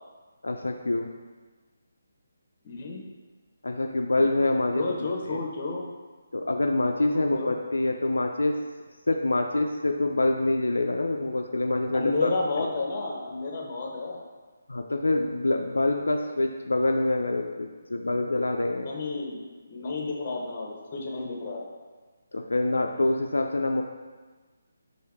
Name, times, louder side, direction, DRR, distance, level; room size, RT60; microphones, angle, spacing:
voice 1, 0.4-1.1 3.6-5.4 6.3-8.6 9.1-12.3 12.6-12.7 14.7-18.9 22.3-23.8, left 2 dB, 85° left, 3 dB, 0.3 m, -26 dB
voice 2, 2.6-3.0 4.7-5.9 7.1-7.5 11.9-14.3 18.7-19.4 19.7-21.7, left 3 dB, 40° left, 0 dB, 0.8 m, -31 dB
4.6 x 2.6 x 3.4 m, 1.4 s
figure-of-eight pair, 155°, 0 cm